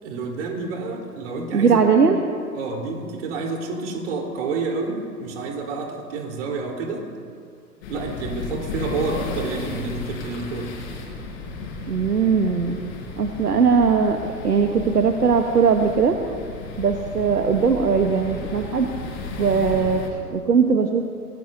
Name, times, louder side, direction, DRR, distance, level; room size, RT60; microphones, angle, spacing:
voice 1, 0.0-1.8 2.1-2.2 2.6-7.1 7.9-10.7, right 3 dB, 45° right, 0 dB, 4.1 m, -29 dB
voice 2, 1.5-2.2 11.9-12.8 13.2-16.2 16.8-18.9 19.4-20.0 20.3-21.0, right 5 dB, 75° right, 5 dB, 1.3 m, -19 dB
sound 1, 7.8-20.1, left 3 dB, 40° left, 4.6 m, -34 dB
25.5 x 20.5 x 2.8 m, 2.2 s
figure-of-eight pair, 110°, 47 cm